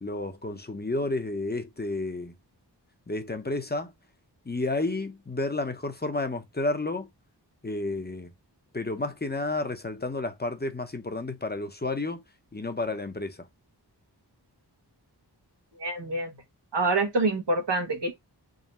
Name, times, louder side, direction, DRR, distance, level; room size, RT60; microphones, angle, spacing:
voice 1, 0.0-2.3 3.1-3.9 4.4-7.1 7.6-8.3 8.7-12.2 12.5-13.5, left 2 dB, 25° left, 0.8 m, -31 dB
voice 2, 15.8-16.3 16.7-18.1, right 2 dB, 80° right, 1.2 m, -26 dB
3.7 x 2.2 x 4.1 m
wide cardioid pair, 45°, 42 cm